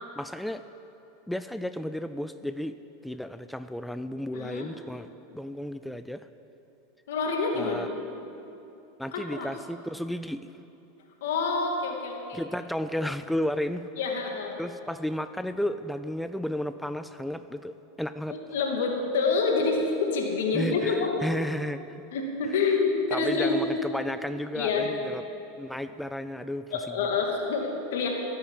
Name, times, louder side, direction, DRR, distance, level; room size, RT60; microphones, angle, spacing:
voice 1, 0.2-0.7 1.3-6.3 7.5-7.9 9.0-10.5 12.3-13.8 14.6-18.4 20.5-21.8 23.1-25.2 25.6-26.7, left 1 dB, ahead, 11 dB, 0.4 m, -33 dB
voice 2, 4.3-4.7 7.1-8.0 9.1-9.5 11.2-12.5 14.0-14.6 18.3-21.2 22.1-23.6 24.5-24.9 26.7-28.1, left 4 dB, 75° left, 1 dB, 2.5 m, -27 dB
14.0 x 9.4 x 7.5 m, 2.9 s
hypercardioid pair, 105°, 0 cm